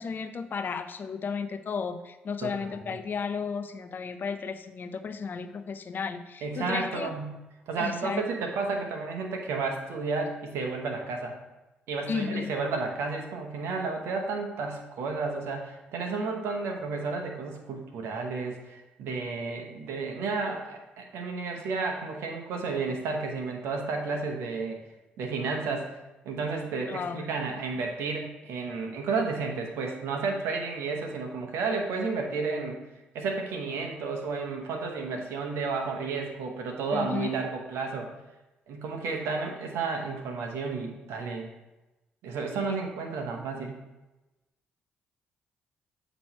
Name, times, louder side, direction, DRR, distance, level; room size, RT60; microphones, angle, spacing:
voice 1, 0.0-7.1 7.8-8.2 12.1-12.5 26.9-27.3 36.9-37.3, left 5 dB, 50° left, 10 dB, 0.5 m, -33 dB
voice 2, 2.4-2.8 6.4-7.4 7.7-11.4 11.9-24.8 25.2-25.9 26.2-32.8 33.1-38.1 38.7-41.5 42.2-43.7, right 4 dB, 75° right, 2 dB, 1.0 m, -32 dB
7.8 x 3.1 x 4.2 m, 1.0 s
supercardioid pair, 55°, 4 cm